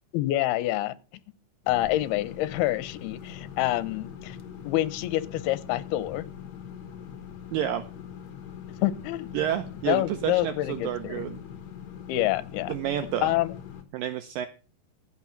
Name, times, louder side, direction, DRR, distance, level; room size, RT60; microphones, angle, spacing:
voice 1, 0.1-0.9 1.7-4.4 4.7-6.2 8.8-9.3 9.9-11.3 12.1-12.7 13.2-13.5, left 15 dB, 80° left, 2.7 m, -27 dB
sound 1, 1.6-13.8, left 8 dB, 55° left, 2.2 m, -42 dB
voice 2, 7.5-7.8 9.3-11.4 12.7-13.3 13.9-14.5, right 11 dB, 80° right, 2.0 m, -29 dB
15.0 x 6.0 x 5.7 m
omnidirectional pair, 4.7 m